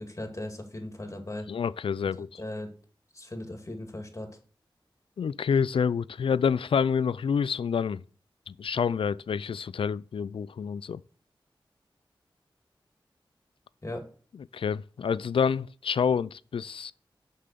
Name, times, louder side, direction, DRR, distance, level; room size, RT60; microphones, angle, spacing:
voice 1, 0.0-1.5 2.2-2.7 3.1-4.3 13.8-14.1, left 1 dB, 35° left, 2.4 m, -38 dB
voice 2, 1.5-2.3 5.2-8.0 8.5-11.0 14.5-16.9, left 6 dB, 85° left, 0.4 m, -28 dB
6.8 x 5.6 x 6.7 m
cardioid pair, 50°, 9 cm